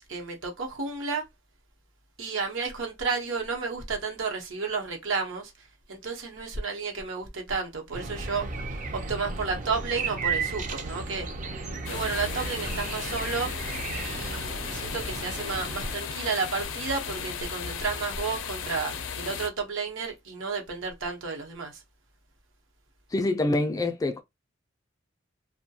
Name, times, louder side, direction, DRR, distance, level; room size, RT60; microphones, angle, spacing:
voice 1, 0.1-1.2 2.2-8.5 8.9-11.3 11.9-13.5 14.0-21.8, right 4 dB, 80° right, 0.9 m, -32 dB
sound 1, 7.9-15.9, right 4 dB, 40° right, 0.4 m, -34 dB
sound 2, 11.9-19.5, left 6 dB, 80° left, 0.4 m, -35 dB
voice 2, 23.1-24.2, left 2 dB, 20° left, 0.3 m, -25 dB
2.3 x 2.1 x 2.7 m
head